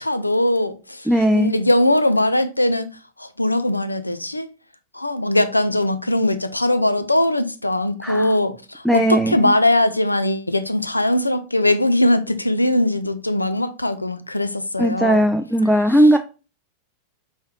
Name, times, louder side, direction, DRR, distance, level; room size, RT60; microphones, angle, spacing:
voice 1, 0.0-2.9 3.2-4.5 4.9-15.3 15.7-16.1, left 1 dB, 85° left, 0.4 m, -20 dB
voice 2, 1.1-1.5 8.0-8.3 8.8-9.5 14.8-16.2, right 1 dB, ahead, 0.3 m, -17 dB
4.5 x 3.2 x 2.8 m
figure-of-eight pair, 90°, 0 cm